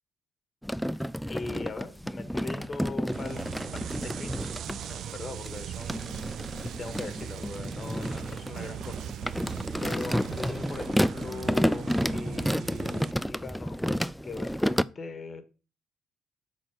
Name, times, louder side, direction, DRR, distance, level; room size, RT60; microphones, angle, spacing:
sound 1, 0.6-4.8 5.4-14.8, equal, ahead, 0.3 m, -30 dB
voice 1, 1.3-6.1 6.5-9.5 9.8-15.4, left 4 dB, 40° left, 1.5 m, -41 dB
sound 2, 3.1-13.1, right 10 dB, 70° right, 0.4 m, -39 dB
sound 3, 4.6-10.6, right 8 dB, 85° right, 0.9 m, -53 dB
7.4 x 4.3 x 6.4 m
cardioid pair, 90°, 0 cm